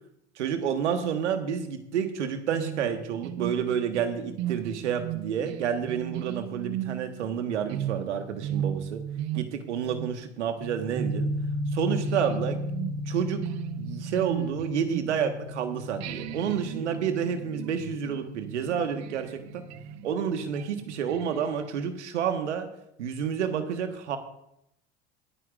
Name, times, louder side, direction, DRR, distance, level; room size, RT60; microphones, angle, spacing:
voice 1, 0.4-9.0 9.3-11.3 11.7-12.6 13.1-13.4 13.8-19.6 20.0-22.7 23.0-24.2, right 8 dB, 80° right, 7 dB, 1.5 m, -29 dB
sound 1, 2.5-15.6 16.0-21.9, right 12 dB, 50° right, 0.8 m, -37 dB
sound 2, 11.0-20.7, left 1 dB, 10° right, 4.3 m, -36 dB
23.0 x 9.4 x 2.5 m, 0.80 s
hypercardioid pair, 75°, 35 cm